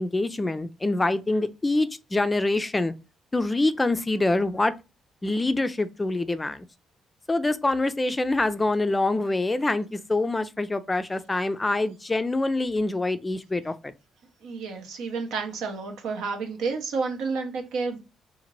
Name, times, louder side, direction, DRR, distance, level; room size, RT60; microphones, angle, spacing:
voice 1, 0.0-2.9 3.3-4.7 5.2-6.7 7.3-13.9, left 2 dB, 20° left, 0.3 m, -25 dB
voice 2, 14.4-18.0, right 4 dB, 85° right, 0.7 m, -30 dB
2.8 x 2.5 x 2.9 m
cardioid pair, 90°, 0 cm